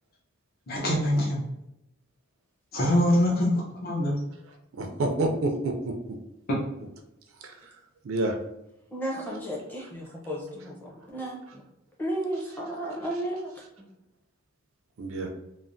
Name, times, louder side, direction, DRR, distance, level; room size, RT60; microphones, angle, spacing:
voice 1, 0.7-1.4 2.7-4.1, left 1 dB, 50° left, -4 dB, 0.7 m, -24 dB
voice 2, 4.8-6.2 7.4-7.5 8.0-8.4 15.0-15.3, right 2 dB, 75° right, 4 dB, 0.4 m, -28 dB
voice 3, 8.9-11.6 12.0-13.5 13.8-13.9, right 1 dB, 10° left, -3 dB, 0.6 m, -33 dB
3.2 x 2.0 x 2.5 m, 0.88 s
head